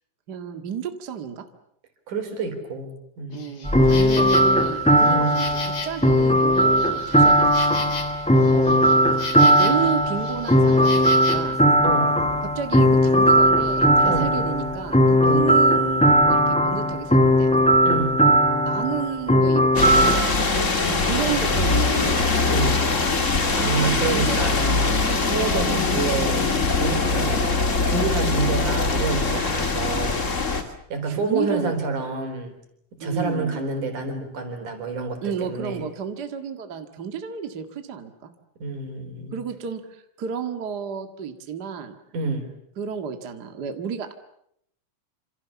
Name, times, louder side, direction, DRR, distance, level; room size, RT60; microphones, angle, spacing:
voice 1, 0.3-1.5 3.3-7.8 9.4-11.6 12.4-17.5 18.7-20.1 21.0-22.3 23.6-25.0 25.6-25.8 27.1-27.5 30.5-30.7 31.1-31.7 33.0-33.6 35.2-38.3 39.3-41.9 42.8-44.1, right 7 dB, 40° right, 6 dB, 1.9 m, -32 dB
voice 2, 2.1-3.4 5.0-5.4 8.5-9.2 11.8-12.2 14.0-14.3 15.2-15.5 17.8-18.2 21.2-21.7 22.5-22.9 23.5-25.0 25.3-27.5 27.8-30.2 30.9-32.5 33.0-35.9 38.6-39.4 42.1-42.5, right 3 dB, 70° right, 6 dB, 5.4 m, -28 dB
Insect, 3.3-11.4, left 5 dB, 55° left, 4.3 m, -37 dB
sound 1, 3.6-20.2, equal, 5° left, 0.7 m, -18 dB
sound 2, 19.7-30.6, left 3 dB, 25° left, 2.0 m, -22 dB
27.5 x 27.5 x 7.1 m, 0.73 s
omnidirectional pair, 3.7 m